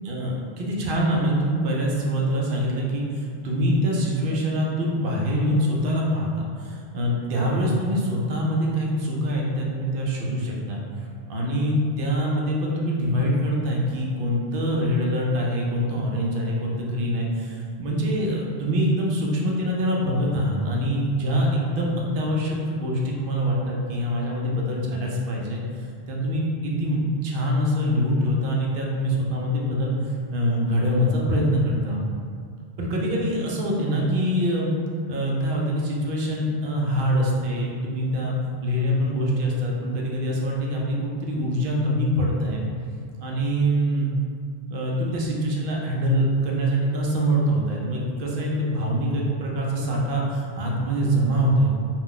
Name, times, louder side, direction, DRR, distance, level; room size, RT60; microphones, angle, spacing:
voice 1, 0.0-32.0 32.8-34.7 35.1-38.3 38.6-42.6 43.2-44.1 44.7-51.7, equal, 60° right, -2 dB, 0.7 m, -24 dB
2.4 x 2.2 x 3.7 m, 2.2 s
omnidirectional pair, 1.1 m